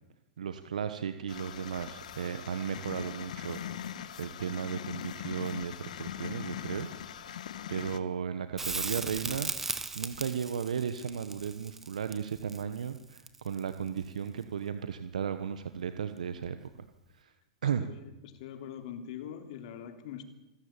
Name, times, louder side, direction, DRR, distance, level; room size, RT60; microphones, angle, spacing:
voice 1, 0.4-7.4 7.7-16.6 17.1-17.3 17.6-17.9, right 7 dB, 85° right, 10 dB, 1.2 m, -35 dB
sound 1, 1.3-8.0, left 9 dB, 80° left, 1.5 m, -41 dB
Crackle, 8.6-13.7 16.4-16.5, right 3 dB, 10° right, 1.5 m, -37 dB
voice 2, 17.8-20.2, left 9 dB, 60° left, 7 dB, 3.3 m, -43 dB
26.5 x 13.5 x 8.9 m, 0.98 s
hypercardioid pair, 125°, 4 cm